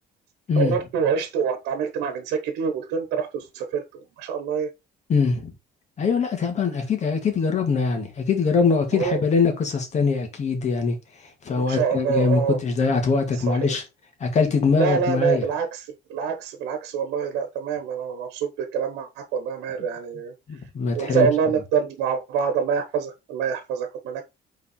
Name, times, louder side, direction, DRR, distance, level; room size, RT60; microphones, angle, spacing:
voice 1, 0.5-4.7 8.9-9.2 11.6-12.6 13.5-13.7 14.8-20.3 20.9-24.2, right 7 dB, 85° right, 1.1 m, -26 dB
voice 2, 5.1-5.5 6.0-11.0 11.4-13.8 14.2-15.5 20.5-21.3, left 5 dB, 45° left, 2.1 m, -22 dB
5.4 x 4.1 x 4.3 m
cardioid pair, 110°, 17 cm